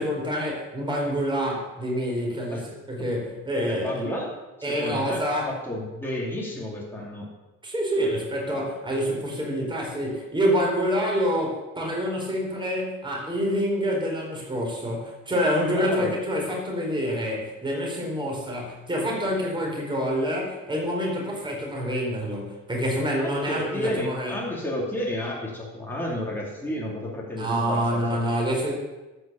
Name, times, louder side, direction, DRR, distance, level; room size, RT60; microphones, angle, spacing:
voice 1, 0.0-4.0 4.6-5.5 7.6-24.3 27.3-28.7, equal, 15° right, -3 dB, 4.5 m, -27 dB
voice 2, 3.7-4.3 4.6-7.3 15.8-16.2 23.2-28.2, left 1 dB, 5° left, -4 dB, 2.9 m, -31 dB
13.0 x 6.4 x 7.0 m, 1.1 s
cardioid pair, 110°, 32 cm